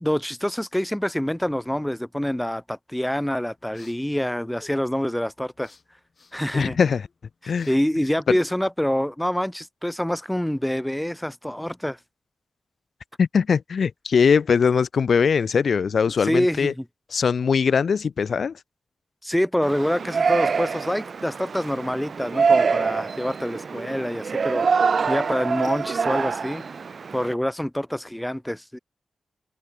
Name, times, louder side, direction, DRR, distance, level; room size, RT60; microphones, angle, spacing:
voice 1, 0.0-5.7 6.3-6.8 7.4-12.0 16.2-16.8 19.2-26.6 27.1-28.8, equal, 5° left, 0.7 m, -26 dB
sound 1, 3.5-9.1, left 4 dB, 50° left, 7.9 m, -56 dB
voice 2, 6.5-7.0 7.5-7.7 8.3-8.4 13.2-16.7 17.1-18.5, left 6 dB, 65° left, 0.4 m, -21 dB
Yell, 19.6-27.3, right 5 dB, 55° right, 0.3 m, -25 dB
wide cardioid pair, 120°, 0 cm